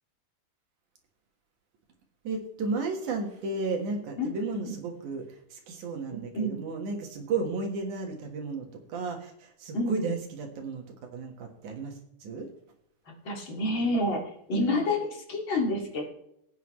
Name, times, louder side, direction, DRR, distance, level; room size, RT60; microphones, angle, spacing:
voice 1, 2.2-5.3 5.5-10.8 11.1-12.5 14.6-14.9, right 4 dB, 60° right, 3 dB, 2.6 m, -33 dB
voice 2, 6.1-6.6 9.7-10.1 13.2-16.1, left 1 dB, 35° left, 0 dB, 2.4 m, -29 dB
17.5 x 9.2 x 3.2 m, 0.75 s
omnidirectional pair, 4.6 m